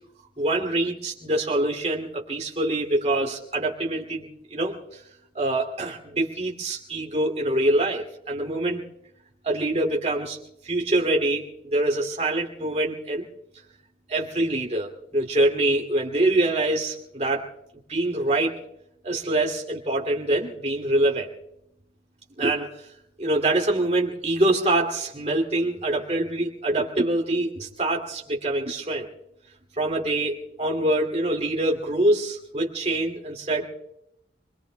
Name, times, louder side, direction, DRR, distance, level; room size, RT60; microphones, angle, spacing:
voice 1, 0.4-5.0 5.3-8.8 9.4-10.4 10.6-13.2 14.1-17.5 17.9-18.6 19.0-21.3 22.4-22.8 23.2-29.1 29.8-33.7, right 1 dB, 35° right, 0 dB, 2.4 m, -25 dB
30.0 x 21.5 x 2.2 m, 0.79 s
head